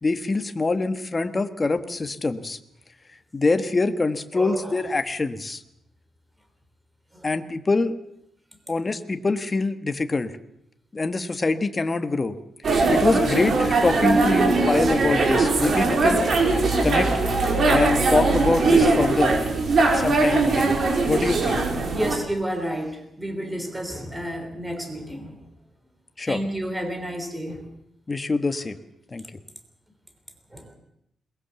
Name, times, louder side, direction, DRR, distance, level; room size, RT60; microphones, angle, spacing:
voice 1, 0.0-2.6 3.3-5.6 7.2-7.9 8.7-10.3 10.9-12.3 12.7-16.2 16.8-17.1 17.6-19.3 19.9-20.7 21.1-21.6 26.2-26.4 28.1-28.8 29.1-29.2, left 3 dB, 20° left, 8 dB, 1.4 m, -24 dB
voice 2, 4.3-4.8 7.1-7.3 21.9-25.5 26.2-27.6 30.5-30.8, equal, 10° right, 7 dB, 3.5 m, -31 dB
sound 1, 12.6-22.2, right 3 dB, 45° right, 5.0 m, -20 dB
21.5 x 21.0 x 7.0 m, 0.76 s
wide cardioid pair, 145°, 0 cm